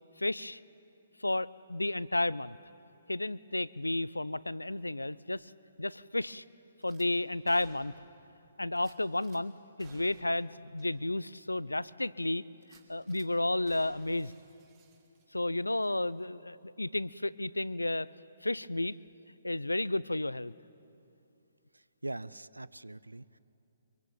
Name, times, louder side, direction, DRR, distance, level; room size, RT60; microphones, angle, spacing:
voice 1, 0.2-0.6 1.2-2.6 3.1-5.5 5.8-6.4 6.8-7.9 8.6-9.5 9.8-14.3 15.3-18.1 18.4-19.0 19.4-20.5, left 2 dB, 80° left, 20 dB, 0.6 m, -32 dB
Gunshot gunfire / Glass, 6.8-7.1 7.5-8.2 8.8-9.4 9.8-10.5 10.8-10.9 11.3-11.4 12.6-13.3 13.7-15.5 15.8-16.0, right 6 dB, 30° right, 3.4 m, -60 dB
voice 2, 21.7-23.4, right 2 dB, 80° right, 20 dB, 0.6 m, -42 dB
25.0 x 23.5 x 9.0 m, 2.7 s
figure-of-eight pair, 130°, 0 cm